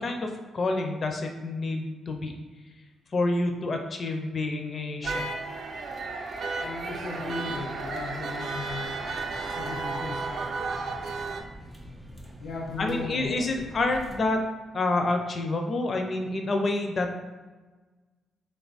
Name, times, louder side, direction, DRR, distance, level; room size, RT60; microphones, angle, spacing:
voice 1, 0.0-2.3 3.1-5.3 12.8-14.4 14.7-17.1, left 2 dB, 35° left, 4 dB, 0.6 m, -28 dB
sound 1, 5.0-11.4, right 3 dB, 50° right, 0.6 m, -33 dB
voice 2, 6.6-9.0 9.5-10.5 10.8-10.9 12.4-13.4, left 3 dB, 75° left, -2 dB, 0.9 m, -36 dB
sound 2, 8.6-14.2, equal, 10° right, 0.6 m, -46 dB
3.6 x 3.5 x 4.1 m, 1.3 s
cardioid pair, 140°, 0 cm